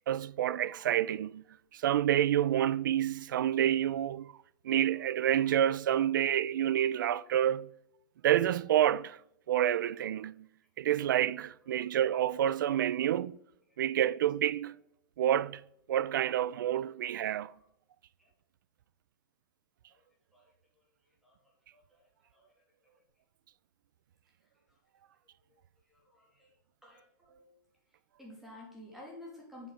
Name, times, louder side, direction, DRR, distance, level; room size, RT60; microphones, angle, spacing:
voice 1, 0.1-1.4 1.7-4.3 4.6-7.7 8.2-9.2 9.5-10.5 10.8-13.4 13.8-14.8 15.2-15.6 15.9-17.5, right 11 dB, 85° right, 0.4 m, -28 dB
voice 2, 26.1-26.5 26.8-27.5 28.2-29.7, left 1 dB, ahead, 2.6 m, -51 dB
7.5 x 7.2 x 5.6 m
supercardioid pair, 170°, 10 cm